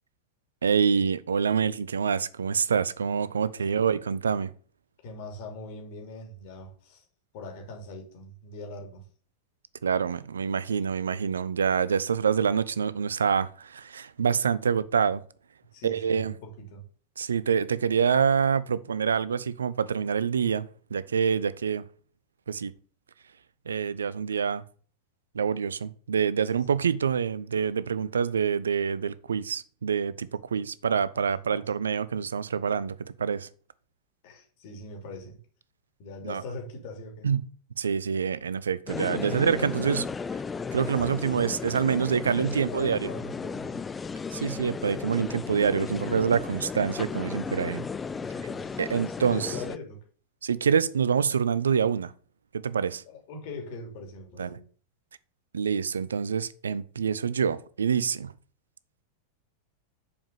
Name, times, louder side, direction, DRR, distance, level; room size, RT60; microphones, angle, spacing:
voice 1, 0.6-4.5 9.8-15.2 15.8-16.3 17.2-21.8 22.5-22.7 23.7-24.6 25.3-33.5 36.2-36.4 37.2-37.4 37.8-40.1 40.7-43.1 44.3-47.8 48.8-49.5 50.4-52.1 52.5-53.0 54.4-54.6 55.5-58.3, right 6 dB, 70° right, 0.5 m, -26 dB
voice 2, 5.0-7.0 7.3-9.0 15.7-16.8 26.5-26.6 31.1-31.6 34.2-35.4 36.0-37.3 39.9-40.0 40.9-41.6 41.9-42.0 42.3-43.8 48.1-50.0 53.1-54.6, left 2 dB, 50° left, 2.9 m, -42 dB
sound 1, 38.9-49.8, left 5 dB, 15° left, 0.4 m, -35 dB
7.0 x 5.2 x 6.9 m
figure-of-eight pair, 90°, 0 cm